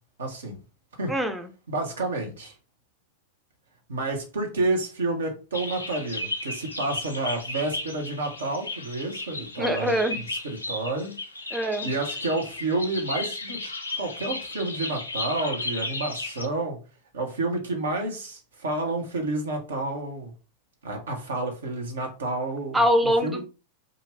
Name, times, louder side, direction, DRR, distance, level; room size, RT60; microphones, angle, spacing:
voice 1, 0.2-0.6 1.0-1.1 1.7-2.5 3.9-9.9 10.3-11.2 11.8-13.6 14.0-16.8 17.1-20.3 20.8-23.4, right 2 dB, 65° right, 1.0 m, -30 dB
voice 2, 1.1-1.5 9.6-10.2 11.5-11.9 22.7-23.4, equal, 10° right, 0.5 m, -23 dB
sound 1, 5.5-16.5, left 2 dB, 80° left, 0.6 m, -34 dB
2.7 x 2.4 x 3.1 m
figure-of-eight pair, 90°, 0 cm